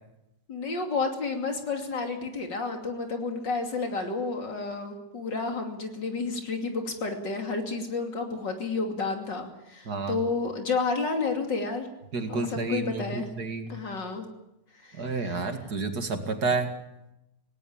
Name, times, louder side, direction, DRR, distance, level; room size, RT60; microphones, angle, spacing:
voice 1, 0.5-11.9 12.3-13.3 13.7-14.3 14.8-15.4, left 4 dB, 80° left, 4 dB, 3.4 m, -31 dB
voice 2, 9.9-10.2 12.1-13.7 15.0-16.7, right 3 dB, 60° right, 6 dB, 2.7 m, -30 dB
18.5 x 18.5 x 8.9 m, 0.89 s
omnidirectional pair, 1.9 m